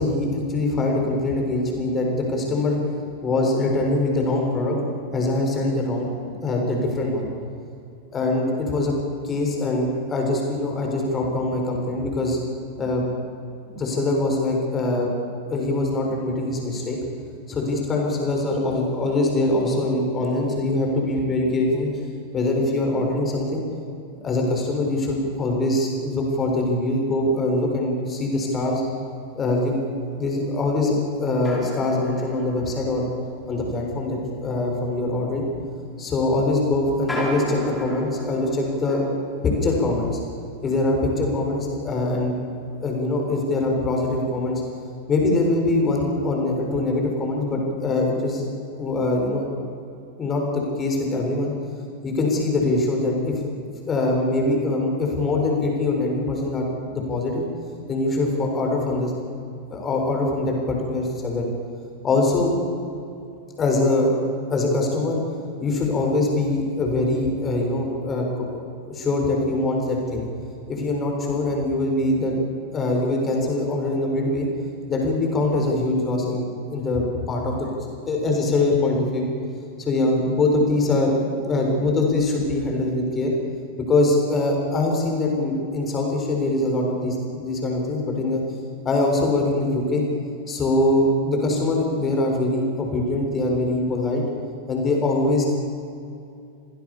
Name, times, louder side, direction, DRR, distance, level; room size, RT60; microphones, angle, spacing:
voice 1, 0.0-2.8 3.2-4.8 5.1-7.3 8.1-8.9 9.2-12.4 12.8-13.1 13.7-15.1 15.5-17.0 17.5-21.9 22.3-23.6 24.2-28.8 29.4-29.7 30.2-33.1 33.5-35.5 36.0-39.1 39.4-40.2 40.6-42.4 42.8-44.6 45.1-48.4 48.8-49.5 50.2-51.5 52.0-53.3 53.9-57.5 57.9-59.1 59.7-61.5 62.0-62.5 63.6-64.1 64.5-65.2 65.6-68.6 68.9-70.3 70.7-72.4 72.7-74.5 74.9-79.3 79.8-83.3 83.9-88.4 88.9-90.0 90.5-94.2 94.7-95.5, left 2 dB, 25° left, 1 dB, 6.9 m, -23 dB
sound 1, 30.1-30.2 31.4-43.4 43.7-43.8 44.4-44.6, left 1 dB, 10° left, 6.5 m, -38 dB
29.0 x 20.0 x 7.3 m, 2.5 s
figure-of-eight pair, 90°, 0 cm